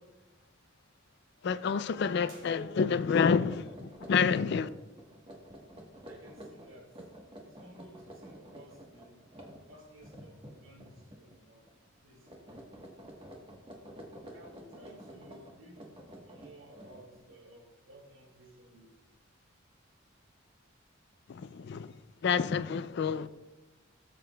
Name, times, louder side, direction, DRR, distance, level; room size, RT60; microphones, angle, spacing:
voice 1, 1.4-4.7 21.3-21.9 22.2-23.3, left 6 dB, 55° left, 0.4 m, -28 dB
sound 1, 1.9-2.3 2.6-2.8 3.3-11.4 11.7-12.0 12.3-17.4, equal, 25° right, 1.2 m, -50 dB
sound 2, 2.2-3.3, right 3 dB, 55° right, 3.5 m, -58 dB
voice 2, 6.1-7.0 7.4-9.2 9.7-11.7 12.0-12.8 14.3-16.0 16.2-19.1, right 1 dB, 80° right, 2.1 m, -55 dB
18.0 x 7.6 x 2.3 m
head